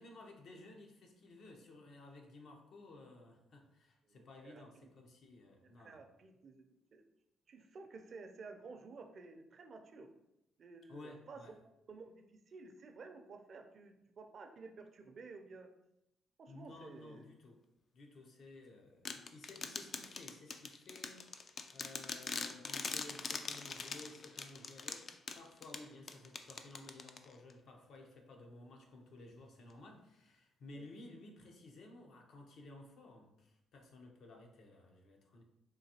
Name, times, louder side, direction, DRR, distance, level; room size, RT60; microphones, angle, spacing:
voice 1, 0.0-6.0 10.9-11.6 16.5-17.6 17.9-35.4, left 2 dB, 65° left, 2 dB, 0.7 m, -55 dB
voice 2, 4.1-4.9 5.8-6.6 6.9-7.1 7.5-10.1 10.6-11.4 11.9-15.7 16.4-17.2 30.7-30.9, right 4 dB, 50° right, 5 dB, 0.5 m, -53 dB
sound 1, 19.1-27.5, left 4 dB, 45° left, 0.3 m, -43 dB
3.8 x 2.6 x 2.8 m, 0.85 s
cardioid pair, 90°, 0 cm